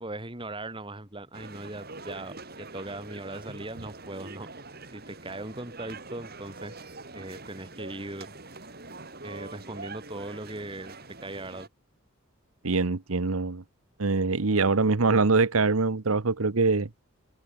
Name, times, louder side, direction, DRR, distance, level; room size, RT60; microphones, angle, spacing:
voice 1, 0.0-4.5 4.9-6.8 7.1-8.4 9.2-11.7, right 2 dB, 25° right, 2.4 m, -39 dB
sound 1, 1.3-11.7, right 3 dB, 45° right, 6.5 m, -44 dB
voice 2, 12.6-13.6 14.0-16.9, right 3 dB, 90° right, 1.1 m, -24 dB
head